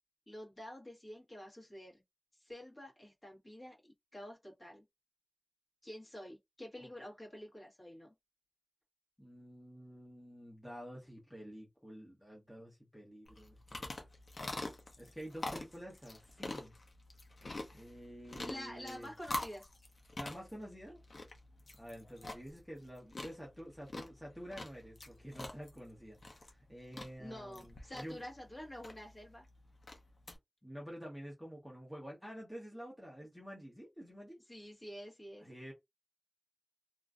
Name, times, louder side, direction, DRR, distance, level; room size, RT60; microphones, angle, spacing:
voice 1, 0.3-2.0 2.4-3.7 4.1-4.8 5.8-8.1 18.4-19.6 27.2-29.4 34.5-35.5, left 1 dB, 35° left, 1.7 m, -48 dB
voice 2, 9.2-13.9 15.0-16.7 17.7-19.1 20.2-21.0 21.8-28.2 30.6-34.4 35.4-35.7, equal, 5° left, 1.1 m, -49 dB
sound 1, 13.3-30.4, left 2 dB, 70° left, 0.7 m, -46 dB
3.0 x 2.5 x 2.5 m
wide cardioid pair, 85°, 0 cm